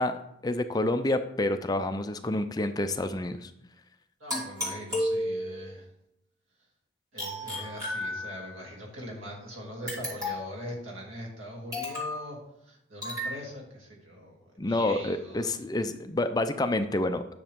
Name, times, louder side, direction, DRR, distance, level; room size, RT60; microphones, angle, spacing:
voice 1, 0.0-3.5 14.6-17.2, left 2 dB, 20° left, 9 dB, 0.4 m, -28 dB
voice 2, 4.2-5.9 7.1-12.4 12.6-15.5, equal, 90° right, -2 dB, 2.9 m, -42 dB
sound 1, 4.3-5.7 7.2-8.6 9.9-10.6 11.7-12.2 13.0-13.4, left 1 dB, 20° right, 3.0 m, -33 dB
10.0 x 6.7 x 3.6 m, 0.78 s
head